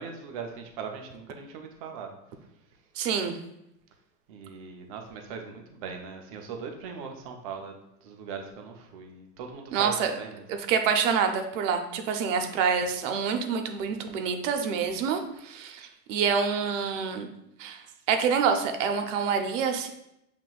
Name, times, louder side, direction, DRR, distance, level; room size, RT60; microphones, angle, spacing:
voice 1, 0.0-2.1 4.3-10.5, right 6 dB, 25° right, 3 dB, 0.3 m, -39 dB
voice 2, 3.0-3.4 9.7-10.1 10.5-17.3 17.6-17.8 18.1-19.9, right 6 dB, 50° right, 6 dB, 0.7 m, -27 dB
7.5 x 2.9 x 2.3 m, 0.84 s
hypercardioid pair, 125°, 49 cm